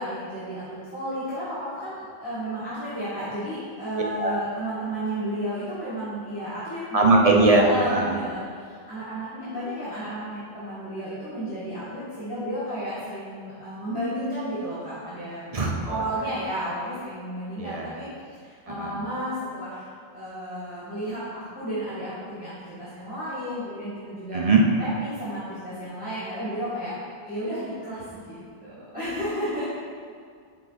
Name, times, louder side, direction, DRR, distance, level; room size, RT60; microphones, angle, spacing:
voice 1, 0.0-15.4 15.9-19.9 20.1-24.4 24.8-26.9 27.3-29.6, equal, 10° right, -11 dB, 1.8 m, -33 dB
voice 2, 6.9-8.2 15.5-16.0 17.6-17.9 18.8-18.9 24.3-24.6, right 2 dB, 40° right, 0 dB, 0.8 m, -20 dB
9.5 x 3.8 x 4.1 m, 2.1 s
omnidirectional pair, 1.0 m